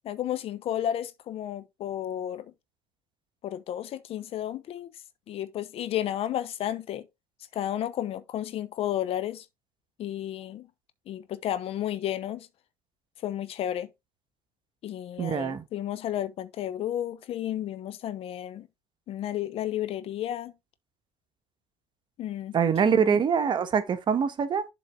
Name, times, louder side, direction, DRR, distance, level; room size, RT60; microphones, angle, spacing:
voice 1, 0.0-2.5 3.4-4.9 5.3-7.1 7.5-9.5 10.0-10.7 11.1-12.5 13.2-13.9 14.8-18.7 19.1-20.5 22.2-22.6 22.9-23.2, left 11 dB, 45° left, 1.0 m, -32 dB
voice 2, 15.2-15.6 22.5-24.7, right 7 dB, 35° right, 1.3 m, -24 dB
7.4 x 4.0 x 4.8 m
hypercardioid pair, 80°, 13 cm